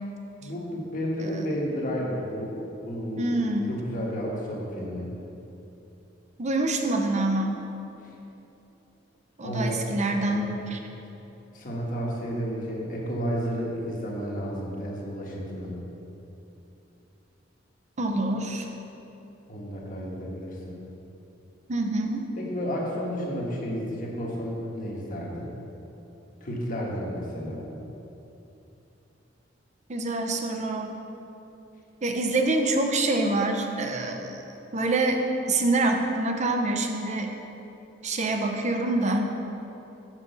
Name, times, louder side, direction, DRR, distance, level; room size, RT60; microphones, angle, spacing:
voice 1, 0.4-2.6 2.8-3.3 3.7-5.1 9.4-10.5 11.5-15.8 19.5-20.8 22.4-25.5 26.4-27.6, equal, 45° left, -3 dB, 1.4 m, -32 dB
voice 2, 3.2-3.7 6.4-7.6 9.4-10.8 18.0-18.7 21.7-22.3 29.9-30.9 32.0-34.3 34.7-35.2 35.5-37.3 38.0-39.3, right 2 dB, 40° right, 4 dB, 0.7 m, -26 dB
6.2 x 5.3 x 6.8 m, 3.0 s
head